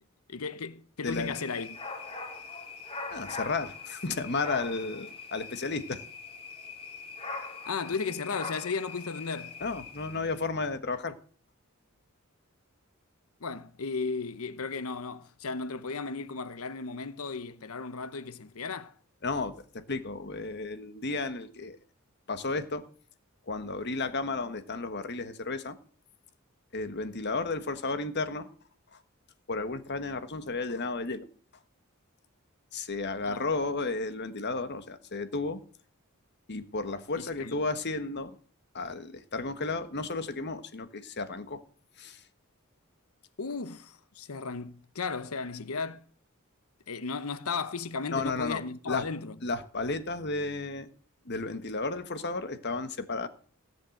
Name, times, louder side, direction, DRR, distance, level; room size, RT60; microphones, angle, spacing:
voice 1, 0.3-1.8 7.6-9.6 13.4-18.9 33.2-33.5 37.1-37.6 43.4-46.0 46.9-49.4, left 4 dB, 85° left, 0.9 m, -35 dB
voice 2, 1.0-1.3 3.1-6.0 9.6-11.2 19.2-21.8 22.3-22.8 23.5-25.8 26.7-28.5 28.9-29.0 29.5-31.3 32.7-35.6 36.5-38.4 38.7-41.6 42.0-42.2 48.1-48.6 48.9-49.1 49.4-50.9 51.2-53.3, left 3 dB, 50° left, 1.4 m, -33 dB
sound 1, 1.0-10.5, left 4 dB, 30° left, 2.5 m, -42 dB
17.5 x 7.6 x 7.8 m
head